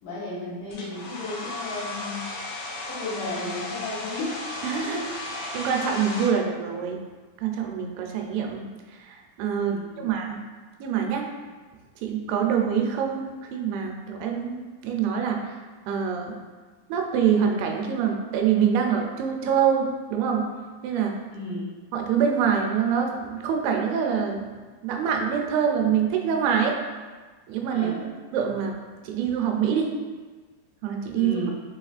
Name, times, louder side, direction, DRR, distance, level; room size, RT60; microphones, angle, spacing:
voice 1, 0.0-2.6 2.9-4.4 4.8-5.0 9.7-10.2 21.3-21.7 27.7-28.0 31.1-31.5, left 2 dB, 70° left, -9 dB, 2.1 m, -34 dB
Domestic sounds home sounds, 0.7-6.3, left 2 dB, 90° left, 2.7 m, -35 dB
voice 2, 4.6-7.0 7.4-10.4 10.8-11.3 12.0-15.6 15.9-16.4 16.9-20.5 20.8-21.2 21.9-24.5 24.8-26.8 27.5-28.8 29.0-29.9 30.8-31.5, right 7 dB, 90° right, 2 dB, 2.5 m, -25 dB
5.9 x 2.9 x 2.4 m, 1.4 s
omnidirectional pair, 4.2 m